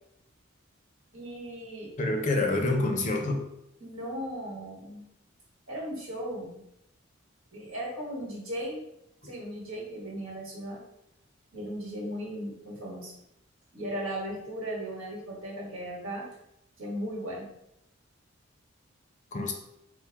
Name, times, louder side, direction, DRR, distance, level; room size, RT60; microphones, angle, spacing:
voice 1, 1.1-1.9 3.8-5.0 5.7-6.6 7.5-8.8 9.2-10.8 11.5-13.1 13.7-16.3 16.8-17.5, equal, 80° right, -3 dB, 1.3 m, -37 dB
voice 2, 2.0-3.5 9.2-9.3 19.3-19.5, left 2 dB, 35° left, 3 dB, 0.5 m, -27 dB
4.4 x 2.1 x 3.4 m, 0.81 s
head